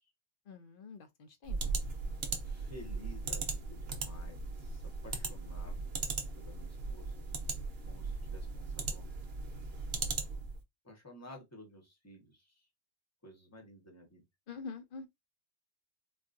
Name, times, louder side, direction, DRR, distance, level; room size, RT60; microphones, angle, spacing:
voice 1, 0.5-1.8 14.5-15.1, left 4 dB, 55° left, 0.7 m, -46 dB
sound 1, 1.4-10.6, right 4 dB, 60° right, 0.9 m, -38 dB
voice 2, 2.4-5.8 6.3-7.3 7.9-9.1 10.8-12.6 13.2-14.2, left 1 dB, 15° left, 0.9 m, -53 dB
4.0 x 2.3 x 2.5 m
omnidirectional pair, 1.3 m